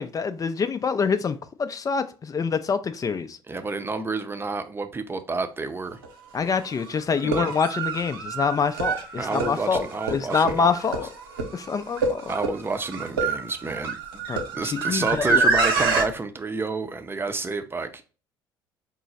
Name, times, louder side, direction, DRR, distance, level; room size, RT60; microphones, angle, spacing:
voice 1, 0.0-3.4 6.3-9.8 10.1-11.1 11.5-12.3 14.3-15.5, left 5 dB, 30° left, 0.5 m, -26 dB
voice 2, 3.5-6.0 7.2-7.5 9.2-10.7 12.3-14.2 14.5-18.0, right 3 dB, 20° right, 0.7 m, -30 dB
sound 1, 6.0-6.1 7.1-16.0, right 4 dB, 90° right, 0.8 m, -26 dB
4.6 x 2.1 x 4.0 m
hypercardioid pair, 60°, 11 cm